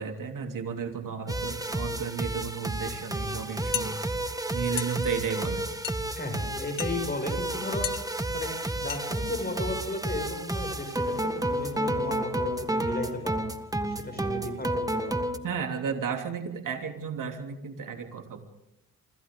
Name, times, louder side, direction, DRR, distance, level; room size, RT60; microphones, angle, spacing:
voice 1, 0.0-4.0 4.5-5.6 15.4-18.4, right 6 dB, 60° right, 4 dB, 3.2 m, -33 dB
sound 1, 1.3-15.4, right 1 dB, 10° right, 1.8 m, -31 dB
sound 2, 3.7-3.9 4.8-5.0 5.8-6.0 6.8-7.0 7.8-8.0 8.9-9.0 9.4-9.5 9.8-10.0, left 10 dB, 65° left, 1.0 m, -33 dB
voice 2, 6.1-8.5 8.8-13.5 13.9-15.2, left 2 dB, 25° left, 4 dB, 6.4 m, -35 dB
28.0 x 26.0 x 3.8 m, 0.86 s
cardioid pair, 90°, 35 cm